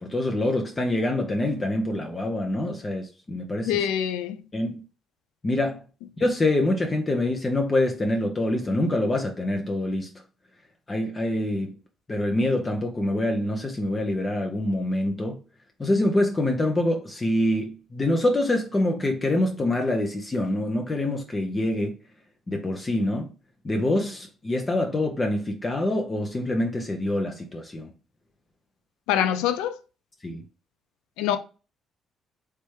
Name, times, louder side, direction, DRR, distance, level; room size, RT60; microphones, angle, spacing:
voice 1, 0.0-3.8 4.5-4.8 5.4-5.8 6.2-10.1 10.9-11.7 12.1-15.4 15.8-21.9 22.5-23.3 23.6-27.9 30.2-30.4, left 1 dB, 30° left, 0.7 m, -25 dB
voice 2, 3.6-4.4 29.1-29.8 31.2-31.4, left 10 dB, 75° left, 0.3 m, -24 dB
3.3 x 3.1 x 3.2 m
hypercardioid pair, 45°, 0 cm